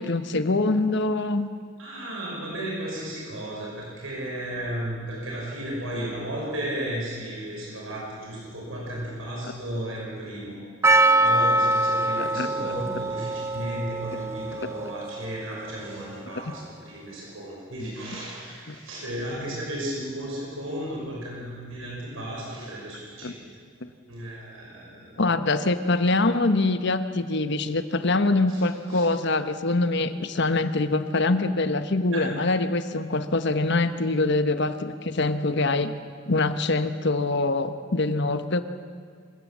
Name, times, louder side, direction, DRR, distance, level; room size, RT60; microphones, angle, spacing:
voice 1, 0.0-1.5 12.2-12.5 18.7-18.8 23.2-23.3 23.8-23.9 25.2-35.9 36.3-38.6, left 2 dB, 60° left, 10 dB, 1.1 m, -24 dB
voice 2, 1.8-10.6 10.8-23.5 24.1-25.2 28.5-28.6 28.9-29.1 32.1-32.4, right 1 dB, 80° right, -3 dB, 5.7 m, -34 dB
Percussion, 10.8-15.8, right 2 dB, 15° right, 0.7 m, -24 dB
26.5 x 15.5 x 7.5 m, 2.2 s
head